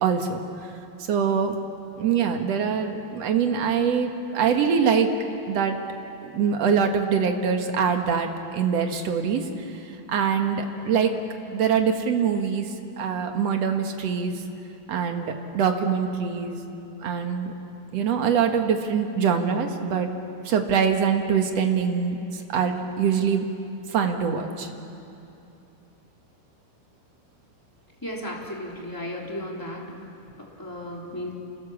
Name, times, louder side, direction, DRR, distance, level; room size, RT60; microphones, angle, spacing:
voice 1, 0.0-0.7 1.0-1.6 2.0-5.1 5.5-5.8 6.2-11.1 11.5-14.4 14.9-16.6 17.0-17.5 17.9-20.1 20.4-23.4 23.9-24.7, right 6 dB, 55° right, 4 dB, 1.9 m, -24 dB
voice 2, 28.0-29.9 30.4-31.3, left 1 dB, 5° left, -3 dB, 2.9 m, -34 dB
28.0 x 25.5 x 7.2 m, 2.8 s
omnidirectional pair, 4.7 m